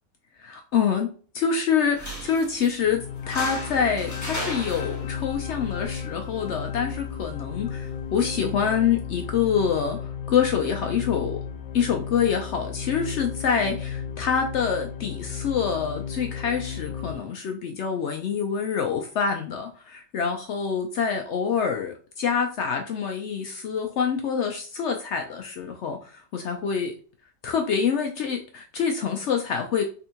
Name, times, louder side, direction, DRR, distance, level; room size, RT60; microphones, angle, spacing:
voice 1, 0.4-10.0 10.3-11.4 11.7-26.9 27.4-29.8, left 7 dB, 75° left, 4 dB, 0.6 m, -26 dB
sound 1, 1.9-8.8, equal, 15° left, 0.8 m, -39 dB
sound 2, 2.8-17.1, left 7 dB, 90° left, 1.2 m, -34 dB
3.5 x 3.3 x 2.9 m, 0.40 s
omnidirectional pair, 1.7 m